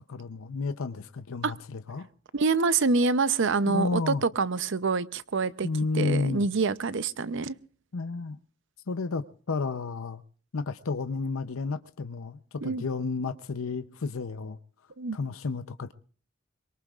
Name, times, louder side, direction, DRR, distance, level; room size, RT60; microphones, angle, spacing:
voice 1, 0.1-2.1 3.7-4.2 5.6-6.4 7.9-8.4 8.9-10.2 10.5-14.6 15.1-15.9, left 4 dB, 90° left, 0.6 m, -31 dB
voice 2, 2.3-5.7 5.9-7.6 12.6-12.8 15.0-15.2, right 4 dB, 65° right, 0.6 m, -26 dB
24.0 x 22.5 x 2.4 m
head